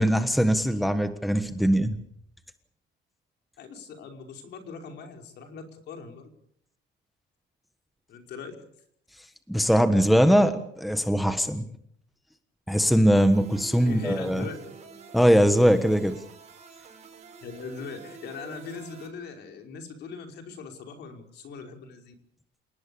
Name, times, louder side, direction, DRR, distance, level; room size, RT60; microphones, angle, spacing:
voice 1, 0.0-2.0 9.5-11.6 12.7-14.4 15.1-16.2, equal, ahead, 9 dB, 1.4 m, -21 dB
voice 2, 3.6-6.3 8.1-8.6 13.7-14.6 17.4-22.1, left 5 dB, 60° left, 4 dB, 5.3 m, -40 dB
sound 1, 13.1-19.1, right 5 dB, 35° right, 6.4 m, -47 dB
28.5 x 19.0 x 7.0 m, 0.67 s
cardioid pair, 150°, 20 cm